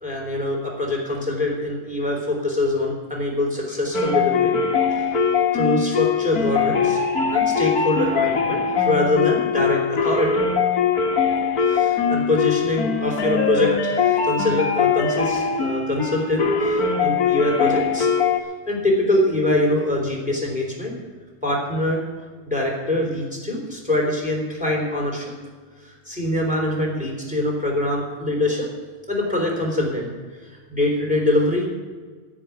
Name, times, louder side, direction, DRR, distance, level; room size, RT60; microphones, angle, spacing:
voice 1, 0.0-4.6 4.9-5.1 5.5-7.0 7.3-10.3 11.6-18.1 18.7-20.9 21.4-22.0 22.4-25.3 25.8-28.7 29.1-30.1 30.7-31.7, left 1 dB, ahead, -2 dB, 3.2 m, -24 dB
sound 1, 3.9-18.4, left 6 dB, 55° left, 0.9 m, -21 dB
10.5 x 8.9 x 9.3 m, 1.5 s
omnidirectional pair, 3.7 m